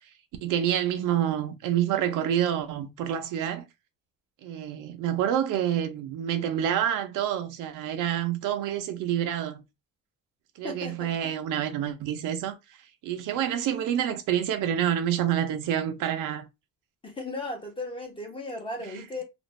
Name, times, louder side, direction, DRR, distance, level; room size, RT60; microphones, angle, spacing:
voice 1, 0.4-3.7 4.4-9.6 10.6-12.8 13.0-16.5 18.9-19.0, right 10 dB, 75° right, 0.7 m, -28 dB
voice 2, 10.6-11.2 17.0-19.2, left 2 dB, 15° left, 0.8 m, -36 dB
2.5 x 2.5 x 3.0 m
cardioid pair, 150°, 32 cm